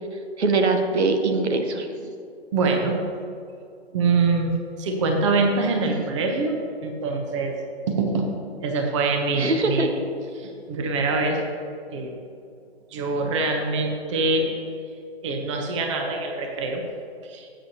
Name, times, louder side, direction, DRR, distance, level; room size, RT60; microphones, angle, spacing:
voice 1, 0.4-1.9 5.9-6.0 9.4-9.9, right 3 dB, 85° right, 5 dB, 1.2 m, -22 dB
voice 2, 2.5-3.0 3.9-4.5 4.8-6.5 6.8-7.5 7.9-8.3 8.6-9.9 10.4-11.4 11.9-12.1 12.9-14.5 15.2-16.8 17.3-17.5, right 3 dB, 30° right, 3 dB, 0.8 m, -24 dB
11.0 x 7.9 x 2.8 m, 2.5 s
hypercardioid pair, 160°, 33 cm